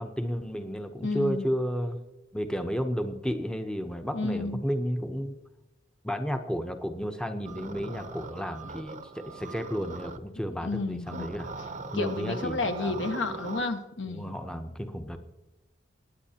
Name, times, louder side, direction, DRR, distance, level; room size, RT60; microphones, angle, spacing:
voice 1, 0.0-2.0 2.3-5.4 6.0-11.5 11.9-13.3 14.1-15.2, equal, 5° left, 6 dB, 0.7 m, -32 dB
voice 2, 1.0-1.5 4.1-4.6 10.6-11.3 11.9-14.4, left 3 dB, 70° left, 6 dB, 1.1 m, -31 dB
sound 1, 7.4-10.2 11.1-13.7, right 3 dB, 40° right, 0.7 m, -41 dB
22.5 x 9.5 x 2.8 m, 1.0 s
head